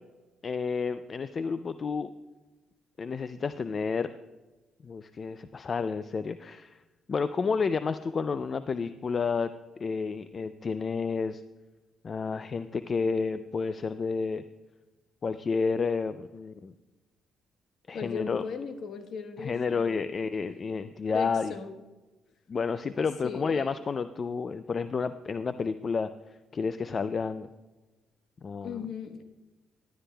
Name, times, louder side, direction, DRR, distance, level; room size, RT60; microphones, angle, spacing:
voice 1, 0.4-2.1 3.0-4.1 4.8-6.8 7.1-9.5 9.8-11.4 12.0-14.4 15.2-16.7 17.9-18.5 19.4-21.5 22.5-27.5 28.4-28.8, left 5 dB, 40° left, 12 dB, 0.4 m, -30 dB
voice 2, 17.9-20.1 21.1-21.7 23.0-23.7 28.6-29.2, left 5 dB, 65° left, 7 dB, 1.2 m, -38 dB
15.0 x 12.0 x 2.3 m, 1.1 s
cardioid pair, 90°, 0 cm